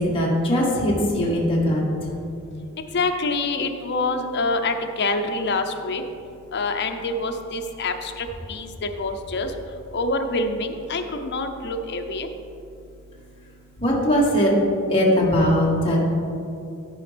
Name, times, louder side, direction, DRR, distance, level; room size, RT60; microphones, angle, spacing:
voice 1, 0.1-1.8 13.8-14.5 14.9-16.0, equal, 25° left, -5 dB, 1.6 m, -20 dB
voice 2, 2.9-6.0 6.5-9.5 9.9-12.3, left 3 dB, 50° left, 5 dB, 0.7 m, -26 dB
14.5 x 5.1 x 3.4 m, 2.6 s
head